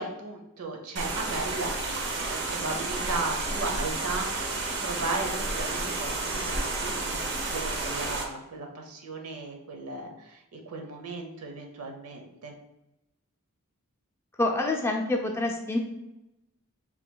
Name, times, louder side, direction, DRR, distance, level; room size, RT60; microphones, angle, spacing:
voice 1, 0.0-1.8 2.3-12.5, right 3 dB, 90° right, 3 dB, 0.8 m, -36 dB
sound 1, 1.0-8.2, right 3 dB, 50° right, 0.7 m, -31 dB
voice 2, 14.4-15.8, left 2 dB, 10° left, 1 dB, 0.4 m, -27 dB
5.7 x 2.9 x 2.3 m, 0.91 s
head